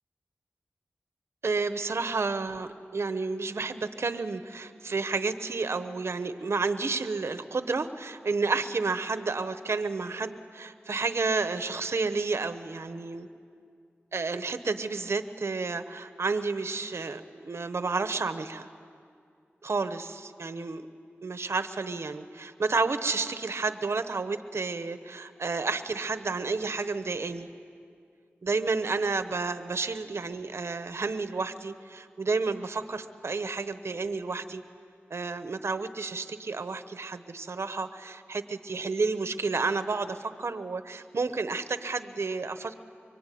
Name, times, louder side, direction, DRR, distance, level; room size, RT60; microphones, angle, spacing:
voice 1, 1.4-13.3 14.1-18.7 19.6-20.9 21.2-27.5 28.4-34.6 35.1-42.7, right 4 dB, 75° right, 10 dB, 1.0 m, -31 dB
24.5 x 24.0 x 9.2 m, 2.3 s
cardioid pair, 45°, 4 cm